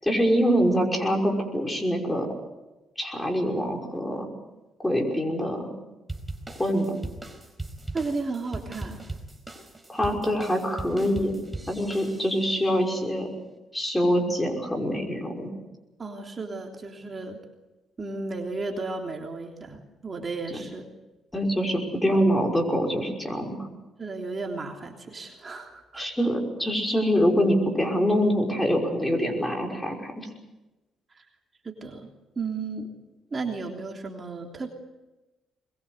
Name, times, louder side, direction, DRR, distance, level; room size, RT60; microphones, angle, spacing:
voice 1, 0.0-2.3 3.0-4.3 4.8-5.7 6.5-6.9 9.9-11.3 11.7-13.3 13.7-15.5 20.5-20.6 21.3-23.6 25.9-30.3, equal, 10° left, 2 dB, 5.7 m, -25 dB
sound 1, 6.1-12.6, right 2 dB, 10° right, 4.7 m, -39 dB
voice 2, 7.9-9.0 16.0-17.4 18.0-20.9 22.1-22.3 24.0-26.0 31.1-31.2 31.6-32.1 32.3-32.9 33.3-34.7, right 3 dB, 35° right, 1 dB, 3.3 m, -34 dB
22.5 x 22.0 x 8.1 m, 1.1 s
cardioid pair, 90°, 0 cm